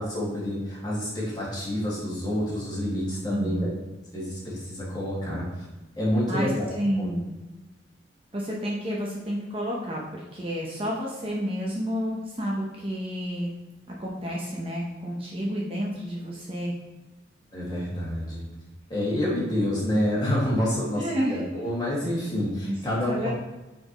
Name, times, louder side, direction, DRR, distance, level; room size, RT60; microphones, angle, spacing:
voice 1, 0.0-3.7 4.1-5.7 6.0-6.7 7.0-7.1 17.5-18.4 18.9-23.3, left 1 dB, 20° left, -6 dB, 2.0 m, -28 dB
voice 2, 3.3-3.7 6.3-7.3 8.3-13.5 14.0-16.7 20.9-21.4 22.7-22.8 23.1-23.3, equal, 30° right, -3 dB, 0.8 m, -30 dB
8.2 x 4.4 x 3.0 m, 1.1 s
head